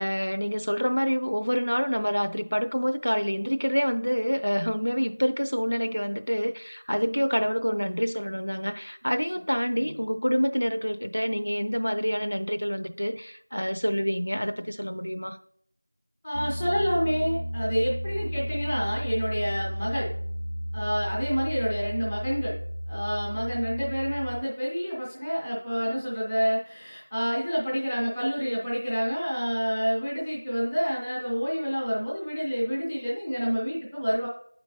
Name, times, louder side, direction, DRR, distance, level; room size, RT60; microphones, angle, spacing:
voice 1, 0.0-15.4, equal, 75° left, 0.5 m, -27 dB
voice 2, 16.2-20.1 20.7-22.6 22.9-34.3, equal, 5° left, 0.4 m, -28 dB
Piano, 16.3-24.4, equal, 70° right, 0.5 m, -34 dB
7.8 x 4.4 x 2.8 m
figure-of-eight pair, 180°, 0 cm